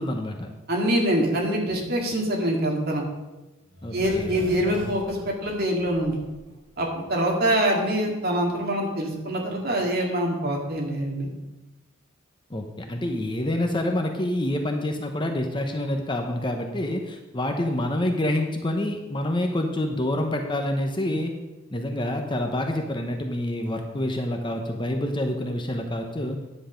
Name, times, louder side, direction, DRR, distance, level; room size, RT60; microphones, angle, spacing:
voice 1, 0.0-0.5 3.8-4.4 12.5-21.3 21.7-26.4, left 1 dB, 20° left, 4 dB, 0.8 m, -27 dB
voice 2, 0.7-3.0 3.9-6.2 6.8-11.3, right 1 dB, 45° right, 0 dB, 2.0 m, -25 dB
sound 1, 3.7-6.6 6.9-7.0, right 1 dB, 75° right, 2.9 m, -39 dB
10.0 x 7.8 x 5.1 m, 1.1 s
head